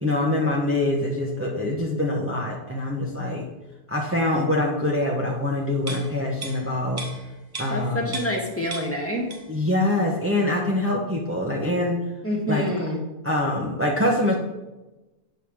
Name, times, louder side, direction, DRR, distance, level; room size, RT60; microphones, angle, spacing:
voice 1, 0.0-3.4 3.9-7.0 7.6-8.1 9.5-12.0 12.5-12.7 13.2-14.3, left 1 dB, 10° right, -3 dB, 1.3 m, -24 dB
sound 1, 5.8-8.5 8.7-9.7 10.0-10.1, right 3 dB, 35° right, 1.4 m, -37 dB
voice 2, 7.7-9.3 12.2-13.0, equal, 10° left, -1 dB, 1.8 m, -27 dB
8.9 x 5.7 x 6.4 m, 1.1 s
omnidirectional pair, 1.2 m